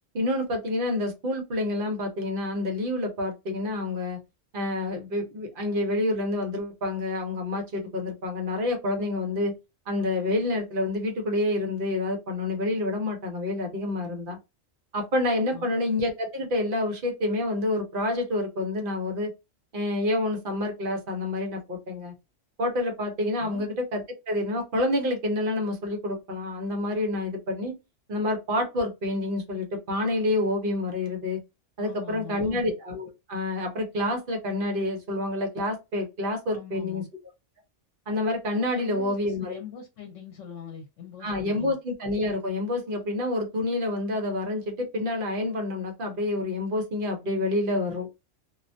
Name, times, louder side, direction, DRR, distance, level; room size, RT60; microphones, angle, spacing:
voice 1, 0.1-4.2 4.5-9.5 9.9-14.4 14.9-19.3 19.7-22.1 22.6-27.7 28.1-31.4 31.8-37.0 38.1-39.6 41.2-48.1, left 2 dB, 50° right, 0.8 m, -28 dB
voice 2, 31.8-32.6 36.5-37.1 38.7-41.7, left 7 dB, 85° left, 1.0 m, -42 dB
2.3 x 2.1 x 2.5 m
omnidirectional pair, 1.3 m